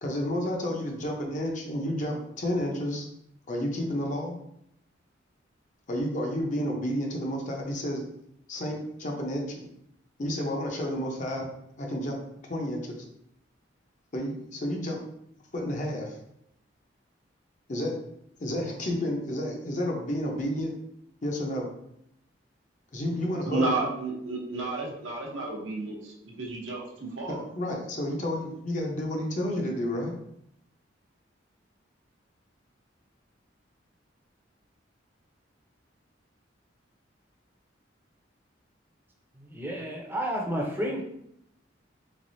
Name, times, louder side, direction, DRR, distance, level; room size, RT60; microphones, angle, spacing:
voice 1, 0.0-3.1 3.5-4.3 5.9-8.0 8.5-9.7 10.2-11.5 11.8-12.2 12.5-13.0 14.1-15.0 15.5-16.2 17.7-18.0 18.4-20.7 21.2-21.7 22.9-23.9 27.3-30.1, equal, 40° left, 1 dB, 0.6 m, -31 dB
voice 2, 23.4-27.4, right 2 dB, 80° right, -2 dB, 0.8 m, -32 dB
voice 3, 39.4-41.0, equal, 10° right, -1 dB, 0.6 m, -31 dB
3.3 x 3.3 x 2.6 m, 0.75 s
head